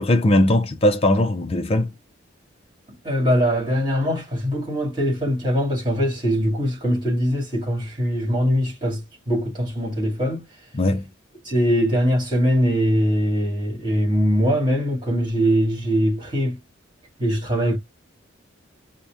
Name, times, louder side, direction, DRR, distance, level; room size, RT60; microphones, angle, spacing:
voice 1, 0.0-1.9 10.7-11.1, left 1 dB, 30° left, 0.5 m, -19 dB
voice 2, 3.0-9.0 9.3-10.4 11.4-16.6 17.2-17.8, equal, 25° right, 1.8 m, -22 dB
4.2 x 2.1 x 3.4 m
head